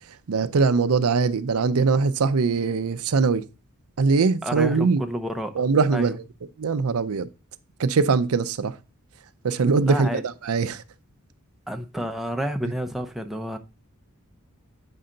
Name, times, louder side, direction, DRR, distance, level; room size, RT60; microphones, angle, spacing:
voice 1, 0.3-3.4 4.0-5.0 5.6-6.2 6.6-7.3 7.8-8.8 9.4-10.8, right 4 dB, 80° right, 0.5 m, -22 dB
voice 2, 4.4-5.6 5.9-6.2 9.9-10.2 11.7-13.6, equal, ahead, 0.7 m, -30 dB
8.5 x 5.6 x 3.8 m
head